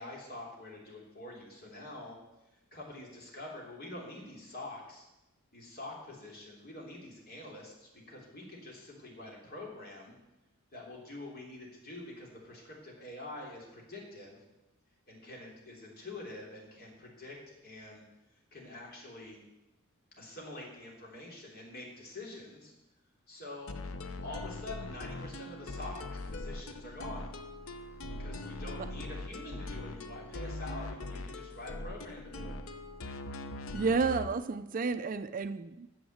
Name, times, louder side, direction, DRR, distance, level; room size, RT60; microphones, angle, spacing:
voice 1, 0.0-2.2 2.7-5.1 5.5-10.1 10.7-14.4 15.1-18.0 18.5-19.4 20.2-22.7 23.3-23.8 24.2-27.3 28.2-32.6, left 2 dB, 45° left, -2 dB, 3.1 m, -46 dB
sound 1, 23.7-34.3, left 2 dB, 70° left, 0.8 m, -41 dB
voice 2, 33.7-35.9, right 4 dB, 40° right, 12 dB, 0.4 m, -31 dB
9.4 x 7.2 x 7.9 m, 0.97 s
head